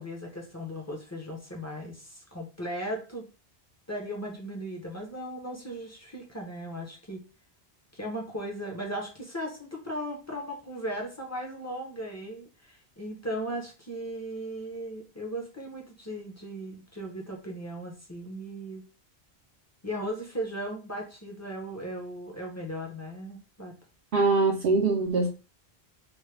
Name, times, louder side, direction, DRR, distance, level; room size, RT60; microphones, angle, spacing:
voice 1, 0.0-3.3 3.9-7.2 7.9-18.8 19.8-23.7, equal, 20° left, 0.6 m, -37 dB
voice 2, 24.1-25.3, right 3 dB, 65° right, 0.7 m, -23 dB
3.0 x 2.1 x 3.2 m
omnidirectional pair, 1.1 m